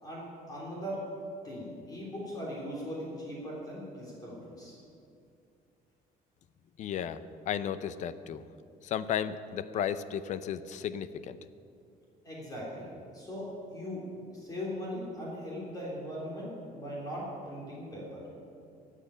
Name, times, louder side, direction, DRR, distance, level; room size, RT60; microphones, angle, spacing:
voice 1, 0.0-1.0 1.4-4.8 12.2-18.2, equal, 25° left, -5 dB, 3.4 m, -39 dB
voice 2, 6.8-7.2 7.5-8.4 8.8-11.4, left 9 dB, 50° left, 14 dB, 0.5 m, -34 dB
13.0 x 7.5 x 10.0 m, 2.5 s
cardioid pair, 165°, 16 cm